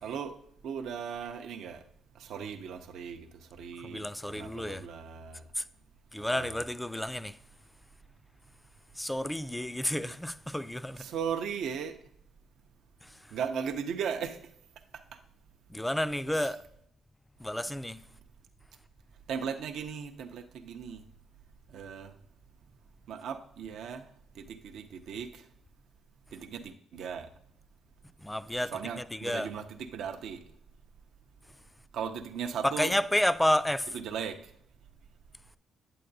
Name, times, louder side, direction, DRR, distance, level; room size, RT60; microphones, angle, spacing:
voice 1, 0.0-0.3 0.6-1.8 2.2-3.2 3.6-5.4 6.3-6.5 10.0-10.1 11.0-12.0 13.3-14.4 16.4-16.5 19.3-21.0 21.7-22.1 23.1-24.0 24.4-25.4 26.3-26.6 26.9-27.3 28.7-30.4 31.9-32.9 34.0-34.4, right 7 dB, 75° right, 0.5 m, -37 dB
voice 2, 3.8-4.8 5.6-5.7 6.1-7.4 9.0-11.0 13.0-13.1 15.7-16.6 17.4-18.0 28.2-29.5 32.6-34.0, left 1 dB, 5° left, 0.3 m, -30 dB
8.5 x 7.7 x 2.6 m
cardioid pair, 90°, 0 cm